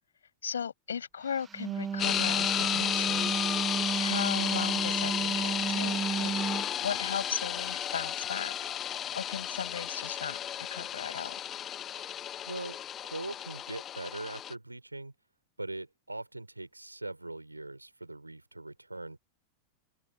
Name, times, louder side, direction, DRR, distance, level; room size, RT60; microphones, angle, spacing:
voice 1, 0.4-3.4 4.0-8.6 9.1-10.4 10.7-11.4, left 7 dB, 70° left, 6.1 m, -37 dB
Wind instrument woodwind instrument, 1.4-6.7, right 6 dB, 20° right, 1.0 m, -33 dB
sound 1, 2.0-14.5, left 10 dB, 30° left, 0.5 m, -33 dB
voice 2, 12.5-12.8 13.0-15.1 15.6-19.2, right 2 dB, 85° right, 3.7 m, -41 dB
open air
figure-of-eight pair, 90°, 0 cm